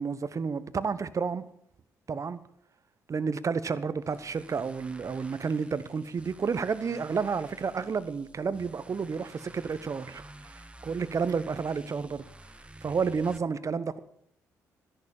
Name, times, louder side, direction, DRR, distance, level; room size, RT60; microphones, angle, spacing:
voice 1, 0.0-1.5 2.1-2.4 3.1-10.5 10.8-12.3 12.8-14.0, right 5 dB, 40° right, 1.1 m, -31 dB
sound 1, 4.0-13.4, right 1 dB, 15° right, 1.1 m, -50 dB
13.5 x 11.0 x 7.2 m
hypercardioid pair, 45°, 8 cm